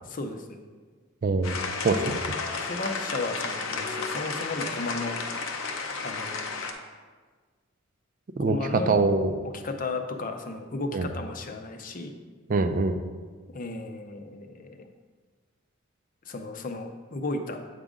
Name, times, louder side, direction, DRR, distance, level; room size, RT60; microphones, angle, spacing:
voice 1, 0.1-0.6 2.6-5.2 6.0-6.6 8.4-8.9 9.5-12.1 13.5-14.9 16.2-17.6, left 3 dB, 45° left, 5 dB, 0.6 m, -34 dB
voice 2, 1.2-1.6 1.8-2.4 8.4-9.3 10.9-11.1 12.5-13.0, right 3 dB, 45° right, 8 dB, 0.4 m, -24 dB
sound 1, 1.4-6.7, left 4 dB, 85° left, 0.7 m, -32 dB
8.1 x 5.0 x 3.7 m, 1.5 s
head